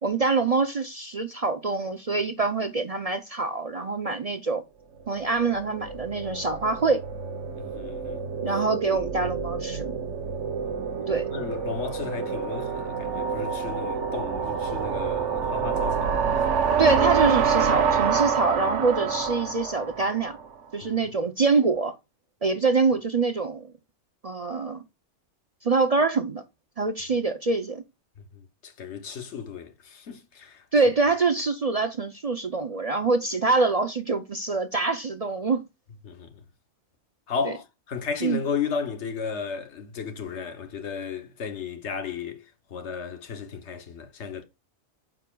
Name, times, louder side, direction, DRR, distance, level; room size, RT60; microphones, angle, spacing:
voice 1, 0.0-4.6 5.1-7.0 8.4-9.9 11.0-11.3 16.8-20.4 20.7-21.9 22.4-23.7 24.2-24.8 25.6-26.4 26.8-27.8 30.7-35.6 37.4-37.5 38.2-38.4, right 4 dB, 40° right, 0.6 m, -25 dB
sound 1, 5.2-20.5, right 6 dB, 85° right, 1.1 m, -27 dB
voice 2, 7.6-8.2 10.8-16.2 20.8-21.0 28.6-30.6 36.0-36.4 37.3-42.4 42.7-44.5, left 6 dB, 70° left, 1.3 m, -34 dB
9.2 x 5.0 x 2.3 m
omnidirectional pair, 1.2 m